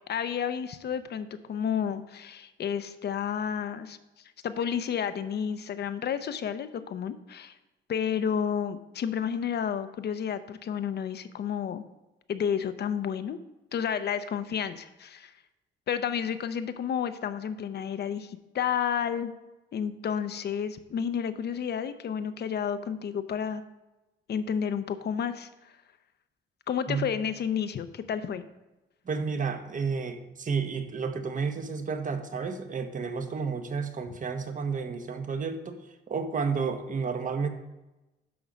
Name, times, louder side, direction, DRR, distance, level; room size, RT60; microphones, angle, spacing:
voice 1, 0.1-4.0 4.4-7.6 7.9-11.8 12.3-13.4 13.7-15.3 15.9-19.3 19.7-23.6 24.3-25.7 26.7-28.4, left 8 dB, 55° left, 11 dB, 0.8 m, -31 dB
voice 2, 29.0-37.5, right 5 dB, 40° right, 7 dB, 1.1 m, -31 dB
11.0 x 3.9 x 6.2 m, 1.0 s
cardioid pair, 90°, 20 cm